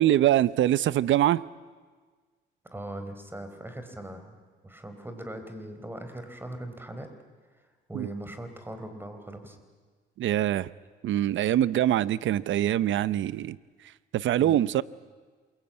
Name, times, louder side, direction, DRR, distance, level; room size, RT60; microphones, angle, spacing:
voice 1, 0.0-1.4 7.9-8.1 10.2-10.7 11.0-13.6 14.1-14.8, right 12 dB, 75° right, 18 dB, 0.8 m, -23 dB
voice 2, 2.7-4.4 4.6-7.1 7.9-9.6 14.4-14.6, right 1 dB, 10° right, 8 dB, 4.2 m, -40 dB
27.5 x 22.0 x 8.8 m, 1.5 s
cardioid pair, 90°, 20 cm